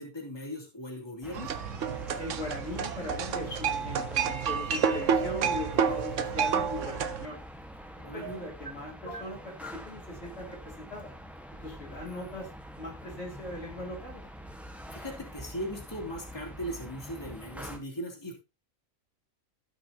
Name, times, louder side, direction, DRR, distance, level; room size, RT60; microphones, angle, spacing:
voice 1, 0.0-1.5 8.0-8.4 12.0-12.3 14.9-18.3, equal, 20° left, -2 dB, 2.9 m, -39 dB
sound 1, 1.2-17.8, equal, ahead, 1.2 m, -45 dB
sound 2, 1.3-7.3, right 7 dB, 65° right, 1.1 m, -29 dB
voice 2, 2.2-7.4 8.1-11.1 11.6-12.5 12.8-14.2, left 1 dB, 45° left, -3 dB, 2.8 m, -39 dB
sound 3, 5.7-6.1 8.1-8.7 9.1-9.8, right 2 dB, 25° right, 3.7 m, -42 dB
16.0 x 6.0 x 2.8 m, 0.27 s
omnidirectional pair, 1.5 m